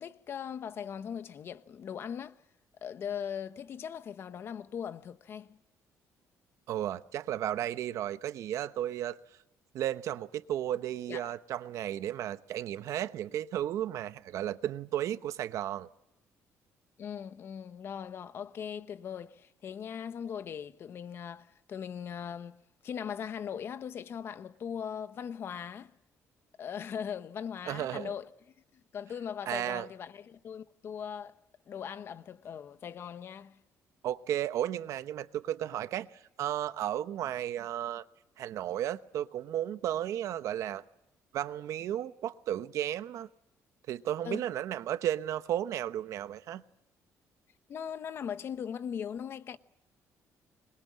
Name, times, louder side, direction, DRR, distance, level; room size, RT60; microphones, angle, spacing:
voice 1, 0.0-2.4 2.8-5.6 11.1-11.3 17.0-25.9 26.6-28.3 28.7-31.3 31.7-33.6 44.2-44.5 47.7-49.6, left 8 dB, 45° left, 1.0 m, -39 dB
voice 2, 6.7-9.2 9.7-15.9 27.7-28.1 29.5-29.9 34.0-36.1 36.4-38.0 38.4-40.8 41.3-43.3 43.9-46.6, right 11 dB, 65° right, 1.0 m, -34 dB
25.5 x 22.0 x 7.5 m
cardioid pair, 150°, 6 cm